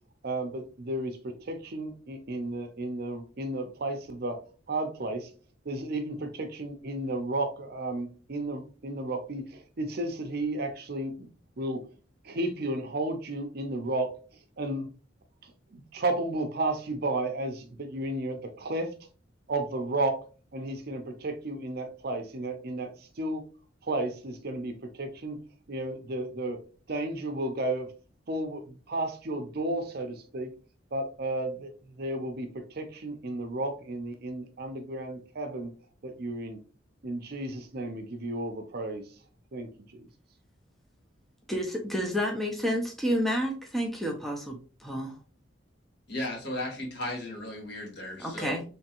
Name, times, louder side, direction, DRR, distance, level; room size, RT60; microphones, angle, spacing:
voice 1, 0.2-4.4 4.7-5.3 5.6-11.3 11.6-11.8 12.2-14.1 14.6-14.9 15.4-18.9 19.5-20.2 20.5-23.4 23.8-25.4 25.7-26.6 26.9-27.9 28.3-30.5 30.9-35.7 36.0-36.6 37.0-39.0 39.5-40.0, right 2 dB, 55° right, 0.6 m, -33 dB
voice 2, 41.5-45.1 48.2-48.6, equal, ahead, 0.6 m, -30 dB
voice 3, 46.1-48.6, left 1 dB, 60° left, 1.4 m, -35 dB
3.5 x 3.2 x 2.9 m
head